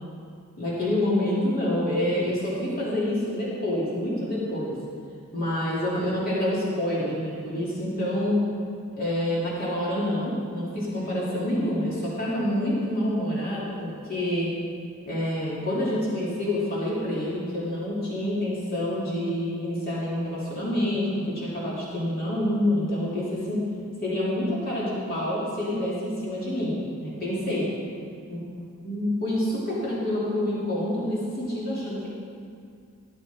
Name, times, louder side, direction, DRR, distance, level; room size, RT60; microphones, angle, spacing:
voice 1, 0.6-4.7 5.3-8.4 9.0-14.5 15.0-23.7 24.0-27.7 28.3-28.4 28.8-32.1, left 1 dB, 45° left, -8 dB, 2.7 m, -27 dB
14.0 x 10.5 x 3.5 m, 2.2 s
head